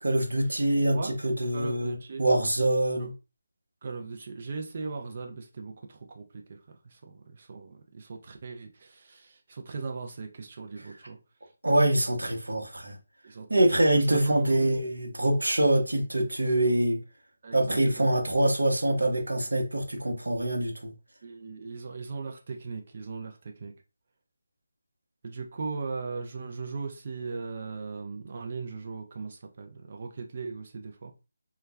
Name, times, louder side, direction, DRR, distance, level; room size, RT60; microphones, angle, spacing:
voice 1, 0.0-3.1 11.6-13.0 13.5-17.0 17.5-20.9, right 1 dB, 80° right, 0.7 m, -25 dB
voice 2, 1.5-2.2 3.0-3.1 3.8-6.6 6.8-11.2 13.2-14.7 17.4-18.2 21.2-23.7 25.2-31.1, right 4 dB, 45° right, 0.5 m, -38 dB
2.3 x 2.1 x 3.3 m
figure-of-eight pair, 155°, 0 cm